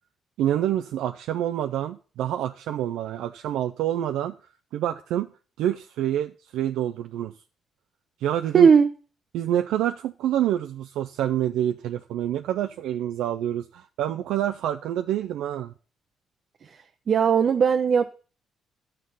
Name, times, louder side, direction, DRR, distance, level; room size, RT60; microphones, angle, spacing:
voice 1, 0.4-4.3 4.7-5.3 5.6-7.3 8.2-8.7 9.3-15.7, right 11 dB, 90° right, 0.4 m, -27 dB
voice 2, 8.5-8.9 17.1-18.1, right 6 dB, 50° right, 0.6 m, -18 dB
10.5 x 6.7 x 5.4 m
cardioid pair, 90°, 0 cm